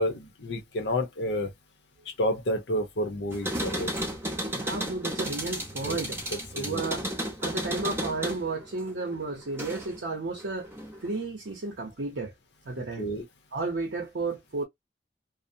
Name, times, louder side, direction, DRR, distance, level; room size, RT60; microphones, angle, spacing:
voice 1, 0.0-1.5 2.2-3.9 5.8-6.0 6.3-6.8 13.0-13.2, equal, 65° left, 0.7 m, -30 dB
sound 1, 3.3-10.0 10.4-11.2, right 1 dB, 10° right, 0.7 m, -34 dB
voice 2, 4.5-6.2 6.5-7.1 7.4-10.7 11.0-12.3 12.6-13.1 13.5-14.6, right 3 dB, 70° right, 0.7 m, -32 dB
2.6 x 2.0 x 2.6 m
head